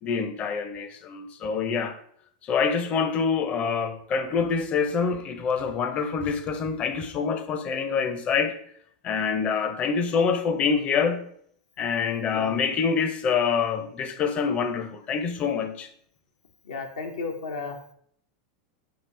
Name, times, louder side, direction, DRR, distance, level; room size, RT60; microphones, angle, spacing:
voice 1, 0.0-2.0 2.4-8.5 9.0-11.2 11.8-15.9, left 6 dB, 35° left, 0.5 m, -26 dB
voice 2, 16.7-17.8, left 4 dB, 85° left, 0.7 m, -33 dB
4.5 x 3.0 x 3.2 m
hypercardioid pair, 100°, 4 cm